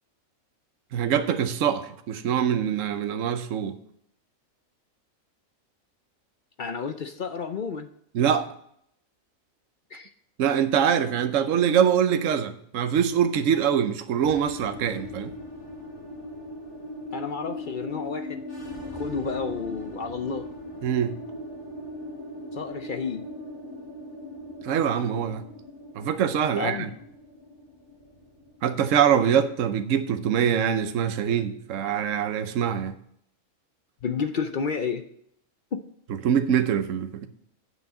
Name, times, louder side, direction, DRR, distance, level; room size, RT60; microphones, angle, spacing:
voice 1, 0.9-3.8 8.1-8.5 10.4-15.3 20.8-21.2 24.6-25.4 25.9-26.9 28.6-32.9 36.2-37.3, right 8 dB, 70° right, 1.1 m, -24 dB
voice 2, 6.6-7.9 9.9-10.1 17.1-18.4 18.9-20.5 22.5-23.3 26.6-26.9 34.0-35.1 35.7-35.8, left 5 dB, 55° left, 0.5 m, -31 dB
sound 1, 14.2-28.9, left 1 dB, 20° left, 3.2 m, -39 dB
9.6 x 5.9 x 5.4 m
omnidirectional pair, 1.4 m